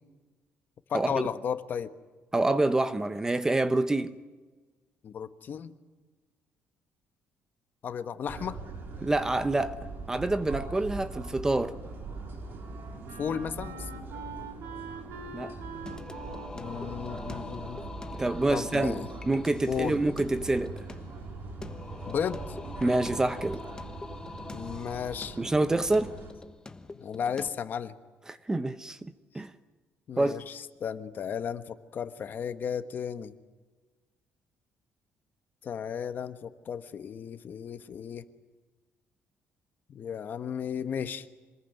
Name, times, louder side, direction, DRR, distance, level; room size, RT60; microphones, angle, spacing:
voice 1, 0.9-1.9 5.0-5.8 7.8-8.6 13.2-14.1 16.5-17.8 18.5-19.1 19.7-19.9 22.1-22.6 24.5-25.4 27.0-27.9 30.1-33.3 35.6-38.3 39.9-41.3, left 7 dB, 45° left, 1.3 m, -34 dB
voice 2, 2.3-4.1 9.0-9.8 10.1-11.8 15.3-15.5 18.1-20.7 22.8-23.6 25.4-26.1 28.3-29.0 29.3-29.5 30.2-30.3, right 2 dB, 10° right, 0.9 m, -27 dB
sound 1, 8.3-26.3, right 3 dB, 45° right, 4.8 m, -42 dB
Wind instrument woodwind instrument, 11.5-19.3, right 4 dB, 75° right, 3.5 m, -46 dB
Singing, 15.9-27.5, left 3 dB, 15° left, 1.1 m, -44 dB
27.0 x 20.5 x 9.3 m
cardioid pair, 150°, 5 cm